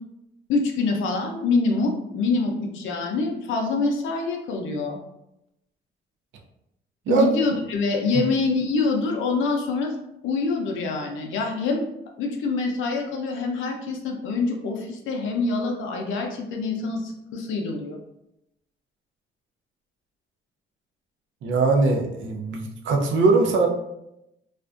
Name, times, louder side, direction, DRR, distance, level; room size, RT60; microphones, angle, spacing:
voice 1, 0.5-5.0 7.1-10.0 10.2-11.8 12.2-18.0, left 3 dB, 75° left, 2 dB, 0.5 m, -25 dB
voice 2, 21.4-23.7, right 3 dB, 75° right, 2 dB, 0.5 m, -21 dB
2.4 x 2.2 x 2.4 m, 0.84 s
cardioid pair, 90°, 20 cm